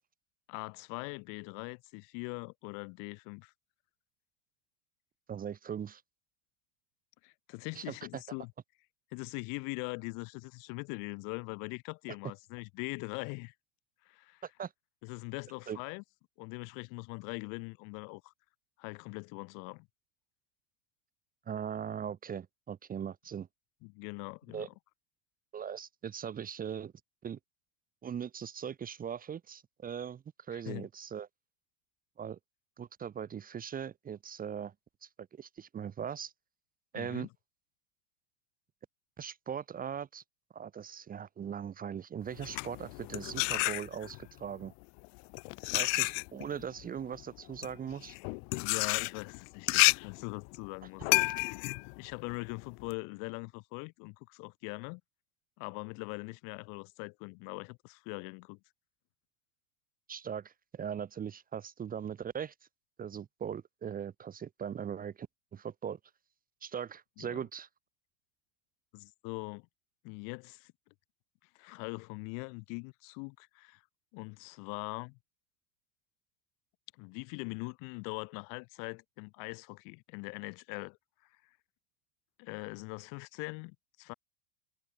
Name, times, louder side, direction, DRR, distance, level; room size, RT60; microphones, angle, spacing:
voice 1, 0.5-3.5 7.2-8.5 9.1-13.5 14.1-14.4 15.0-16.0 16.4-18.3 18.8-19.9 23.8-24.7 30.5-30.9 36.9-37.3 48.5-51.6 52.0-55.0 55.6-58.6 67.2-67.4 68.9-69.7 70.0-70.7 71.5-73.8 74.1-75.2 77.0-81.0 82.4-84.1, left 36 dB, 50° left, 4.6 m, -42 dB
voice 2, 5.3-6.0 7.7-8.2 14.4-14.7 15.7-15.8 21.5-23.5 24.5-24.7 25.5-26.9 27.2-27.4 28.0-31.3 32.2-32.4 32.8-34.7 35.0-36.3 36.9-37.3 39.2-40.2 40.5-44.7 45.7-48.2 60.1-62.5 63.0-65.3 65.5-66.0 66.6-67.7, right 8 dB, 20° right, 1.6 m, -40 dB
sound 1, 42.3-44.3 45.0-52.9, left 38 dB, 35° left, 0.4 m, -31 dB
hypercardioid pair, 105°, 40 cm